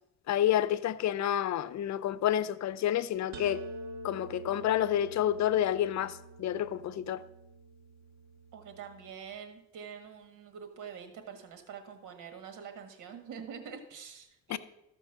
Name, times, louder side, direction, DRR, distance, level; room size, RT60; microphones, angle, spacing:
voice 1, 0.3-3.6 4.0-7.2 14.5-14.6, left 11 dB, 65° left, 0.7 m, -29 dB
sound 1, 3.3-9.1, right 1 dB, 65° right, 1.2 m, -47 dB
voice 2, 8.5-14.6, right 7 dB, 90° right, 1.6 m, -45 dB
13.5 x 5.3 x 6.7 m
cardioid pair, 90°, 30 cm